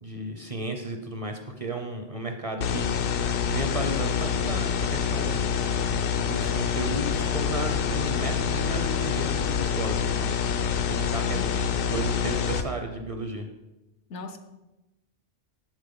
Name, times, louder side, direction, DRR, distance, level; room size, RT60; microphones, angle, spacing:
voice 1, 0.0-5.5 6.1-13.5, right 2 dB, 40° right, 4 dB, 0.6 m, -34 dB
sound 1, 2.6-12.6, left 7 dB, 60° left, 0.7 m, -26 dB
voice 2, 14.1-14.4, left 3 dB, 80° left, 9 dB, 1.0 m, -39 dB
7.3 x 7.2 x 3.8 m, 1.0 s
omnidirectional pair, 1.2 m